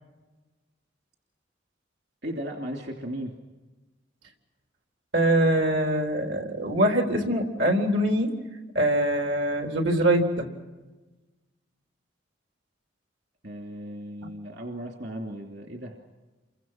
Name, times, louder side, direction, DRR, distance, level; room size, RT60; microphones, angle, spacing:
voice 1, 2.2-3.4 13.4-15.9, equal, 60° right, 1 dB, 3.0 m, -36 dB
voice 2, 5.1-8.3 8.7-10.5, right 1 dB, 85° right, 3 dB, 4.0 m, -23 dB
29.5 x 24.5 x 6.0 m, 1.2 s
head